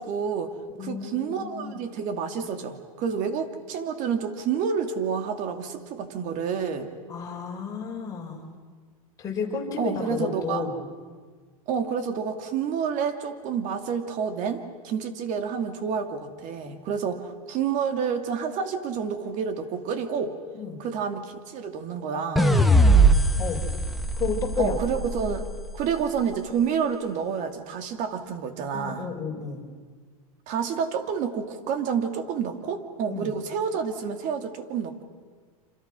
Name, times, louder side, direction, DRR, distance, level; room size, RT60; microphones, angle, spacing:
voice 1, 0.0-0.5 0.8-6.9 9.8-10.7 11.7-20.4 20.8-22.5 24.6-25.5 25.7-29.1 30.5-35.0, right 6 dB, 45° right, 7 dB, 2.6 m, -29 dB
voice 2, 0.7-1.8 7.1-8.5 9.2-10.8 20.6-20.8 23.4-23.6 24.2-24.8 28.7-29.6 33.1-33.3, left 6 dB, 20° left, -2 dB, 5.5 m, -31 dB
sound 1, 22.4-25.6, right 2 dB, ahead, 1.5 m, -20 dB
27.5 x 27.0 x 6.2 m, 1.5 s
supercardioid pair, 135°, 19 cm